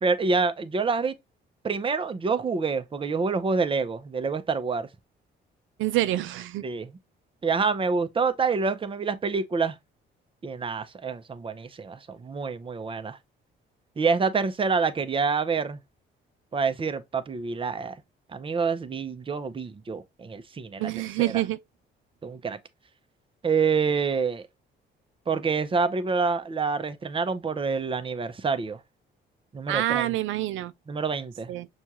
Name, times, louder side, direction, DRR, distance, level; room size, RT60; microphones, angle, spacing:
voice 1, 0.0-1.2 1.6-4.9 6.6-6.9 7.4-9.8 10.4-13.2 14.0-15.8 16.5-18.0 18.3-20.9 21.2-21.3 22.2-22.6 23.4-24.5 25.3-28.8 29.5-30.1 30.9-31.5, right 4 dB, 25° right, 0.6 m, -27 dB
voice 2, 5.8-6.6 20.8-21.6 29.7-30.7 31.5-31.7, right 15 dB, 80° right, 0.4 m, -26 dB
6.1 x 2.4 x 2.8 m
cardioid pair, 90°, 20 cm